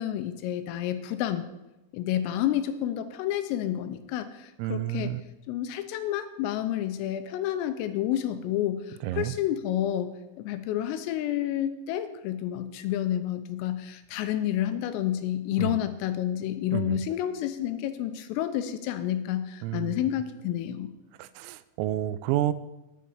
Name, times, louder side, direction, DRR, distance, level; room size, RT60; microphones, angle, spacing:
voice 1, 0.0-1.5 1.9-5.1 5.5-20.9, left 11 dB, 90° left, 9 dB, 3.3 m, -30 dB
voice 2, 4.6-5.2 9.0-9.4 15.6-15.8 16.7-17.0 19.6-20.0 21.2-22.5, right 14 dB, 85° right, 15 dB, 3.3 m, -30 dB
10.0 x 9.6 x 5.7 m, 0.97 s
omnidirectional pair, 6.0 m